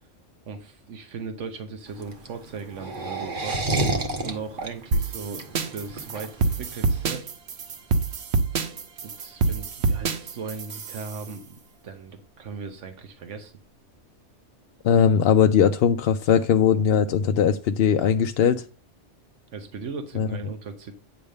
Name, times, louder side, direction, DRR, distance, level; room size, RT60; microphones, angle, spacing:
voice 1, 0.5-3.6 4.2-5.4 5.7-7.2 9.0-13.5 19.5-20.9, right 5 dB, 90° right, 6 dB, 1.3 m, -37 dB
sound 1, 1.9-7.1, right 2 dB, 45° right, 1.3 m, -29 dB
sound 2, 4.9-11.3, right 4 dB, 65° right, 1.1 m, -26 dB
voice 2, 14.8-18.6 20.2-20.3, left 7 dB, 65° left, 7 dB, 0.7 m, -19 dB
9.5 x 3.4 x 6.4 m, 0.36 s
omnidirectional pair, 1.2 m